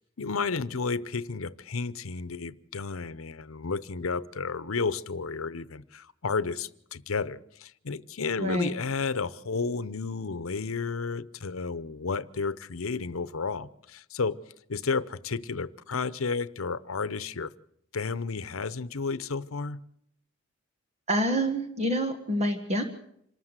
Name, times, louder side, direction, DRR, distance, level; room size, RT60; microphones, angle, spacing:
voice 1, 0.2-14.4 14.7-17.5 17.9-19.8, left 4 dB, 85° left, 0.8 m, -32 dB
voice 2, 8.4-8.7 21.1-22.8, equal, 30° right, 1.5 m, -27 dB
26.5 x 13.5 x 8.1 m
head